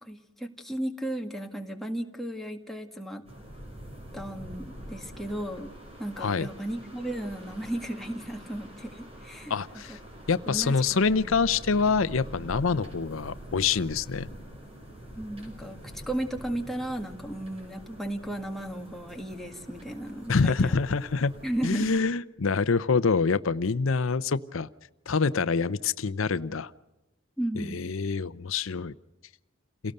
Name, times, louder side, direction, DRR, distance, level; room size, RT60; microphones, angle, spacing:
voice 1, 0.0-3.3 4.1-5.7 6.0-9.5 10.5-11.4 15.2-20.7 21.4-21.9 27.4-27.9, right 1 dB, ahead, 2 dB, 1.9 m, -35 dB
sound 1, 3.2-22.0, equal, 30° right, 5.7 m, -45 dB
voice 2, 6.2-6.5 9.5-10.0 10.3-14.3 20.3-21.3 21.6-24.7 25.1-26.7 27.6-28.9, left 4 dB, 80° left, 15 dB, 0.7 m, -26 dB
28.5 x 18.0 x 6.6 m, 0.98 s
head